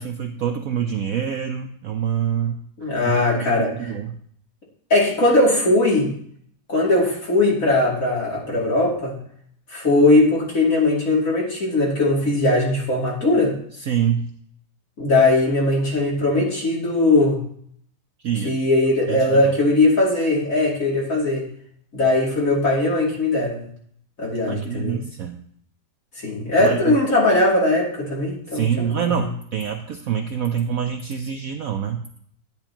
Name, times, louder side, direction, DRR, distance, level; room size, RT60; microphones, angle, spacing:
voice 1, 0.0-2.6 3.1-4.1 13.8-14.3 18.2-18.6 19.1-19.4 24.5-25.4 26.6-27.0 28.5-32.0, right 8 dB, 65° right, 5 dB, 0.9 m, -26 dB
voice 2, 2.8-3.7 4.9-6.1 6.7-9.1 9.7-13.5 15.0-17.4 18.4-21.4 21.9-23.6 24.2-25.0 26.2-29.2, left 2 dB, 45° left, -4 dB, 3.1 m, -19 dB
10.5 x 10.5 x 2.9 m, 0.64 s
omnidirectional pair, 2.0 m